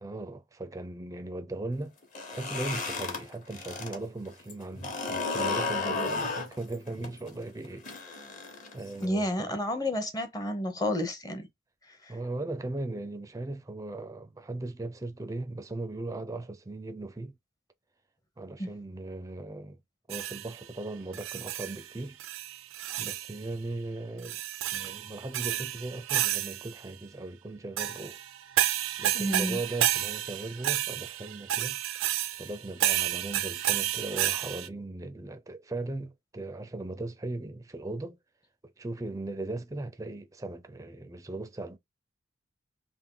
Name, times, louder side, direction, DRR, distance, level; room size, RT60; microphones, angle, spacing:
voice 1, 0.0-2.0 2.3-8.4 8.7-9.6 12.1-17.3 18.4-19.8 20.1-22.2 23.0-24.4 24.7-28.2 29.0-31.8 32.4-38.2 38.6-41.8, right 2 dB, 15° right, 0.4 m, -38 dB
sound 1, 2.0-4.0 4.3-9.1, left 4 dB, 40° left, 1.1 m, -33 dB
voice 2, 9.0-11.5 11.9-12.1 18.6-18.7 29.1-29.6, left 1 dB, 20° left, 0.7 m, -31 dB
sound 2, 20.1-20.6 21.1-21.9 22.2-23.4 24.2-26.8 27.8-34.7, right 12 dB, 85° right, 0.4 m, -31 dB
3.6 x 2.6 x 3.8 m
head